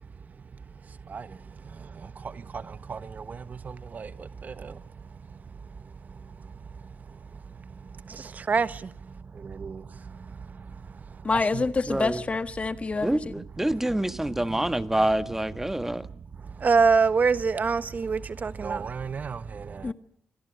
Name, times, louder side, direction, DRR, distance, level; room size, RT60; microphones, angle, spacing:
voice 1, 1.0-4.8 5.3-5.4 6.1-6.3 6.8-7.2 7.6-11.2 11.5-11.7 13.3-13.4 14.4-14.6 15.9-16.1 16.4-19.9, right 5 dB, 50° right, 1.3 m, -29 dB
voice 2, 11.2-13.2 19.8-19.9, left 3 dB, 35° left, 1.6 m, -27 dB
voice 3, 11.9-12.2 13.0-16.0, right 1 dB, 10° right, 1.7 m, -26 dB
27.0 x 19.0 x 9.5 m
cardioid pair, 70°, 4 cm